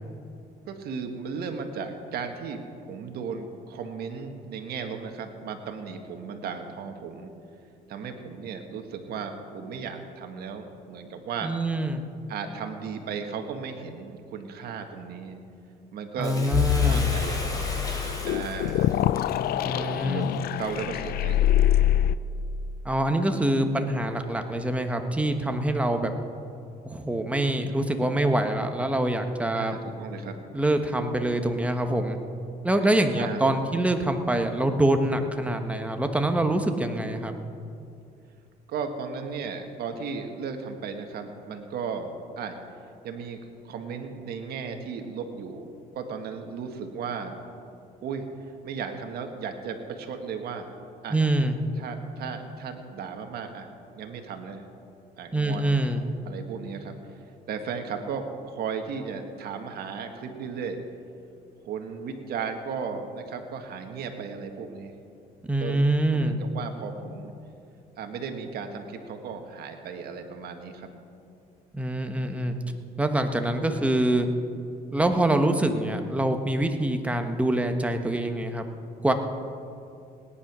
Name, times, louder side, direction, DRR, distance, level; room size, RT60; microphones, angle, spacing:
voice 1, 0.7-7.3 7.9-11.6 12.3-15.4 15.9-17.7 18.2-19.1 19.8-20.3 20.6-21.8 27.4-27.8 29.5-30.3 33.1-33.8 38.7-42.5 43.0-43.4 43.6-45.7 45.9-47.4 48.0-48.3 48.6-50.7 51.0-51.2 51.8-54.7 55.2-55.8 56.2-57.0 57.5-60.8 61.6-64.9 65.6-65.8 66.1-67.3 68.0-70.9, right 6 dB, 65° right, 5 dB, 1.6 m, -35 dB
voice 2, 11.4-12.0 16.2-17.1 19.6-20.3 22.8-26.1 26.8-29.7 30.5-32.2 32.6-37.3 51.1-51.6 55.3-56.0 65.5-66.4 71.7-72.6 73.0-74.3 74.9-78.6 79.0-79.1, right 1 dB, 10° right, 6 dB, 1.1 m, -25 dB
Bathtub (filling or washing), 16.2-20.7 21.3-21.4, left 1 dB, 20° left, 3.5 m, -36 dB
sound 1, 16.5-22.2, left 11 dB, 65° left, 0.5 m, -24 dB
18.0 x 10.0 x 6.1 m, 2.6 s
cardioid pair, 110°, 17 cm